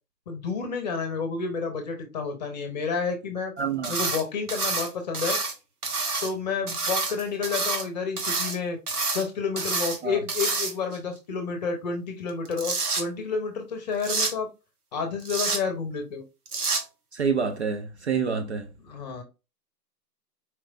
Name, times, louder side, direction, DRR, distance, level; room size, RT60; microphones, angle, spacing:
voice 1, 0.3-3.5 3.9-5.4 6.2-8.8 9.1-14.5 14.9-16.2 18.8-19.2, left 5 dB, 25° left, 0.9 m, -30 dB
voice 2, 3.6-3.9 10.0-10.2 17.1-18.7, right 6 dB, 45° right, 0.5 m, -27 dB
sound 1, 3.8-4.2 4.5-5.5 5.8-6.3 6.7-7.8 8.2-8.6 8.9-9.2 9.6-10.0 10.3-11.0 12.3-13.0 14.0-14.3 15.2-15.6 16.5-16.8, right 3 dB, 65° right, 1.3 m, -28 dB
4.4 x 3.2 x 2.4 m
figure-of-eight pair, 135°, 49 cm